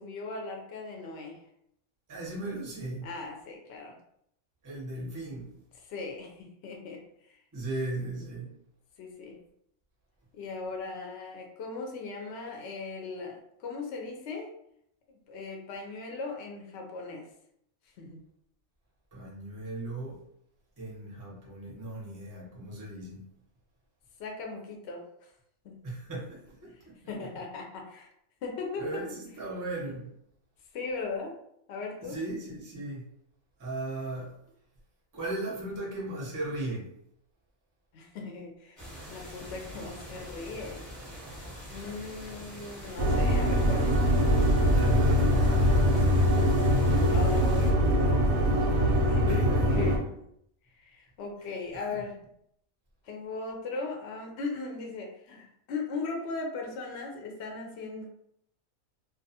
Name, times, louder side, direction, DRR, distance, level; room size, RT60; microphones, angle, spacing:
voice 1, 0.0-1.4 3.0-3.9 5.9-7.0 7.3-7.4 9.0-9.4 10.3-14.5 15.1-17.3 18.0-18.2 24.2-25.1 25.6-25.8 27.1-28.1 28.4-29.0 30.7-31.4 31.7-32.2 37.9-40.8 41.7-43.9 47.1-48.4 49.0-50.0 50.7-52.2 53.0-58.0, left 3 dB, 65° left, 1 dB, 0.7 m, -38 dB
voice 2, 2.1-3.1 4.6-5.5 7.5-8.5 19.1-20.2 20.8-23.2 25.8-27.0 28.8-30.1 32.0-33.1 33.6-34.3 35.1-36.9 44.7-46.4 48.9-49.9 51.7-52.0, right 2 dB, 25° right, -4 dB, 0.5 m, -37 dB
sound 1, 38.8-47.7, equal, ahead, 0.9 m, -44 dB
sound 2, 43.0-50.0, equal, 65° right, 0.7 m, -23 dB
2.4 x 2.3 x 2.7 m, 0.74 s
omnidirectional pair, 1.4 m